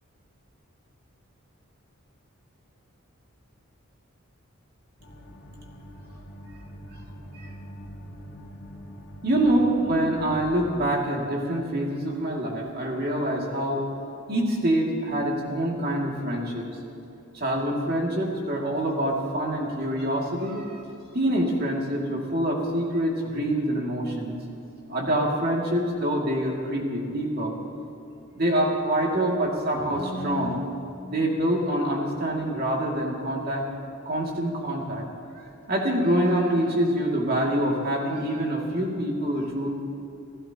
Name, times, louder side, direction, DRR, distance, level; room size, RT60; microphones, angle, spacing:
sound 1, 5.0-10.9, equal, 50° left, 2.3 m, -44 dB
voice 1, 9.2-13.9 14.3-16.7 17.3-20.8 21.1-24.4 24.9-27.5 28.3-30.6 31.1-33.6 34.0-35.0 35.7-39.7, right 1 dB, 45° right, -2 dB, 2.4 m, -25 dB
29.0 x 15.5 x 2.9 m, 2.8 s
head